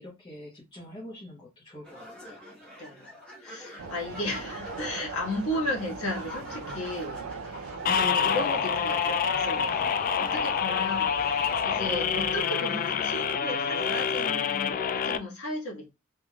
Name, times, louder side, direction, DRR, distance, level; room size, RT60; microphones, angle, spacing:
voice 1, 0.0-2.5 7.8-8.8, left 1 dB, 25° left, 1.0 m, -43 dB
sound 1, 1.8-14.6, left 1 dB, 5° left, 1.3 m, -45 dB
voice 2, 2.8-3.1 3.4-9.8 10.1-15.9, left 1 dB, 85° left, 1.5 m, -35 dB
sound 2, 3.8-12.4, right 5 dB, 80° right, 0.5 m, -41 dB
sound 3, 7.9-15.2, left 7 dB, 40° left, 0.3 m, -27 dB
3.5 x 3.1 x 2.3 m
head